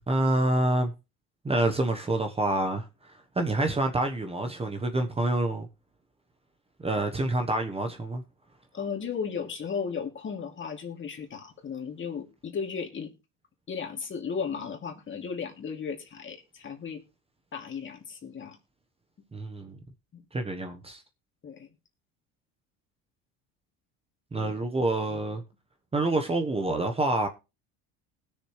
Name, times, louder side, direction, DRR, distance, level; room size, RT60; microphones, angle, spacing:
voice 1, 0.1-0.9 1.4-5.7 6.8-8.2 19.3-19.8 20.3-21.0 24.3-25.4 25.9-27.3, right 2 dB, 15° right, 1.1 m, -27 dB
voice 2, 8.7-13.1 13.7-17.0 17.5-18.6 20.1-20.2 21.4-21.7 24.4-24.7 25.1-25.2, left 6 dB, 35° left, 2.7 m, -35 dB
20.0 x 6.8 x 3.2 m
supercardioid pair, 110°, 35 cm